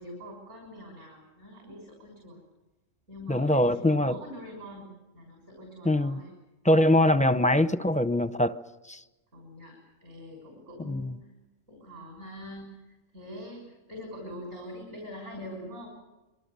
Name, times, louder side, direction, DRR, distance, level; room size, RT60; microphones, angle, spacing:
voice 1, 0.0-2.4 3.1-6.3 9.3-11.1 11.7-15.9, equal, 80° right, 6.3 m, -44 dB
voice 2, 3.3-4.2 5.8-6.2 6.6-8.6 8.9-9.0 10.9-11.1, left 1 dB, 10° left, 0.4 m, -23 dB
26.0 x 23.5 x 6.9 m
omnidirectional pair, 1.3 m